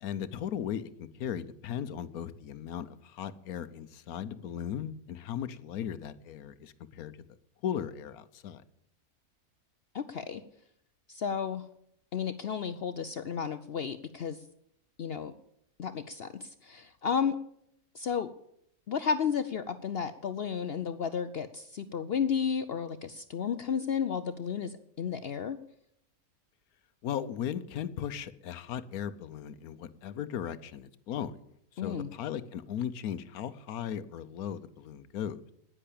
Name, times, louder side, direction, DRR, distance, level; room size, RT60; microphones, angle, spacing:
voice 1, 0.0-7.1 7.6-8.6 27.0-31.3 31.8-35.5, left 9 dB, 80° left, 14 dB, 1.2 m, -37 dB
voice 2, 9.9-10.4 11.1-11.7 12.1-14.4 15.0-15.3 15.8-17.4 17.9-18.3 18.9-25.6 31.8-32.1, left 7 dB, 60° left, 11 dB, 0.6 m, -32 dB
10.0 x 9.9 x 8.5 m, 0.75 s
omnidirectional pair, 1.6 m